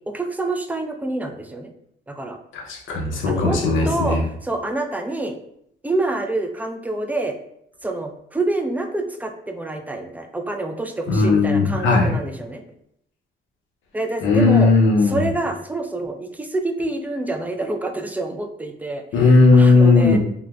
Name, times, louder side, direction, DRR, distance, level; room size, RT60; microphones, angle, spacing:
voice 1, 0.1-1.7 2.1-2.4 3.2-3.6 3.8-5.4 5.8-7.4 7.8-12.6 13.9-14.7 15.0-19.0 19.5-20.2, right 2 dB, 10° right, 4 dB, 0.3 m, -27 dB
voice 2, 2.5-4.2 11.1-12.1 14.2-15.2 19.1-20.2, left 3 dB, 80° left, 0 dB, 0.8 m, -16 dB
3.7 x 2.1 x 2.3 m, 0.73 s
cardioid pair, 90°, 20 cm